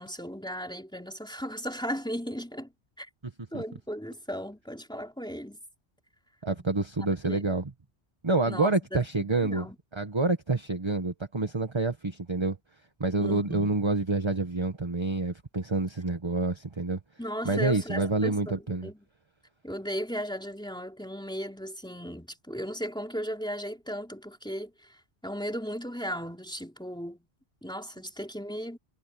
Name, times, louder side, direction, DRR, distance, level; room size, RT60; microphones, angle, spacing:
voice 1, 0.0-2.7 3.0-3.1 3.5-5.6 6.5-6.7 7.3-7.4 8.5-9.8 13.2-13.8 17.2-19.0 19.6-25.0 25.2-27.3 27.6-28.8, equal, 5° left, 3.5 m, -36 dB
voice 2, 6.4-7.7 8.2-9.7 9.9-12.6 13.0-17.0 17.4-18.9, right 3 dB, 25° right, 1.2 m, -28 dB
omnidirectional pair, 1.1 m